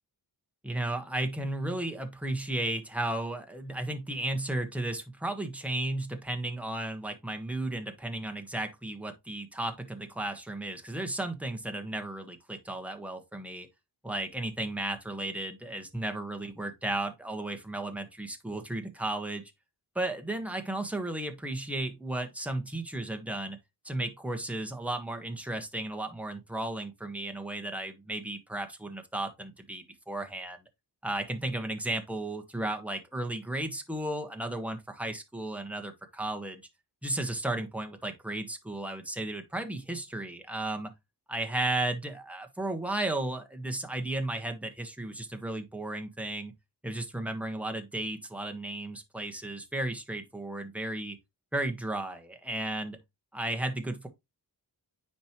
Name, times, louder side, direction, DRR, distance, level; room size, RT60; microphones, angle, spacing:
voice 1, 0.6-13.7 14.0-19.4 19.9-23.6 23.8-30.6 31.0-36.6 37.0-40.9 41.3-46.5 46.8-51.2 51.5-53.0 53.3-54.1, right 1 dB, 5° right, 1.3 m, -34 dB
9.4 x 4.4 x 3.0 m
wide cardioid pair, 100°, 44 cm